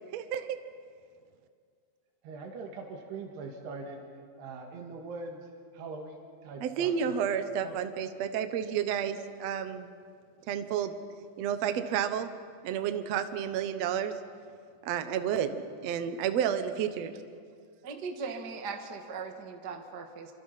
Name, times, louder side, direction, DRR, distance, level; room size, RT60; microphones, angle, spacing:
voice 1, 0.1-0.6 6.6-9.9 10.5-11.0 11.4-12.3 12.6-14.1 14.8-17.2, right 8 dB, 75° right, 8 dB, 1.5 m, -31 dB
voice 2, 2.2-4.1 4.4-5.5 5.7-7.3 7.6-7.8, right 3 dB, 90° right, 1 dB, 3.9 m, -42 dB
voice 3, 17.8-20.3, right 5 dB, 50° right, 4 dB, 1.2 m, -39 dB
28.0 x 25.0 x 5.8 m, 2.2 s
omnidirectional pair, 4.6 m